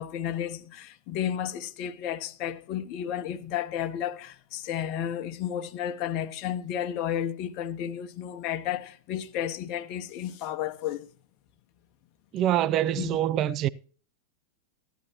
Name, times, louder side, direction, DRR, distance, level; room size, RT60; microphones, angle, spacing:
voice 1, 0.0-11.1 13.0-13.2, left 10 dB, 40° left, 0.9 m, -32 dB
voice 2, 12.3-13.7, right 12 dB, 35° right, 0.5 m, -25 dB
15.5 x 11.0 x 2.9 m
figure-of-eight pair, 90°, 0 cm